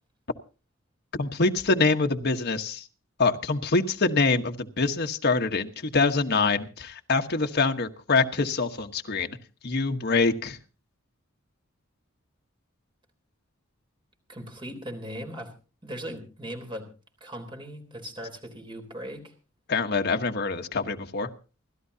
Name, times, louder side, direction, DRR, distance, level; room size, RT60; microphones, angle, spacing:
voice 1, 1.2-2.8 3.2-9.4 9.6-10.6 19.7-21.3, left 3 dB, 50° left, 5 dB, 1.3 m, -25 dB
voice 2, 14.3-15.5 15.8-16.9 17.2-19.3, equal, 25° right, 4 dB, 3.6 m, -38 dB
29.0 x 12.5 x 2.8 m, 0.35 s
head